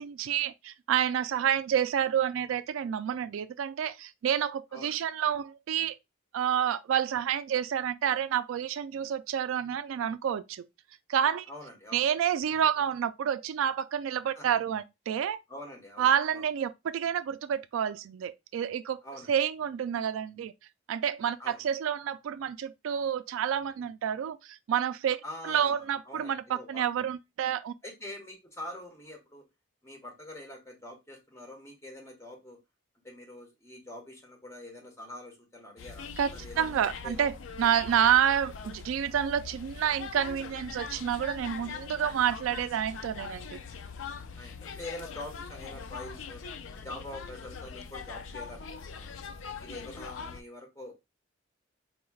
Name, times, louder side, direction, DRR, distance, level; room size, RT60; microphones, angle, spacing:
voice 1, 0.0-5.9 6.3-10.6 11.1-11.5 11.9-15.4 16.0-19.0 19.3-20.5 20.9-25.2 25.4-27.7 36.2-36.3 36.6-43.6, right 9 dB, 80° right, 0.3 m, -29 dB
voice 2, 11.5-12.0 14.3-14.6 15.5-16.5 19.0-19.3 21.4-21.6 25.2-26.8 27.8-29.4 29.8-32.6 33.0-37.2 37.9-38.0 44.4-46.4 46.8-49.2 49.6-50.9, left 1 dB, 15° left, 1.2 m, -45 dB
sound 1, 35.8-50.4, left 5 dB, 75° left, 0.4 m, -42 dB
4.3 x 3.2 x 2.3 m
head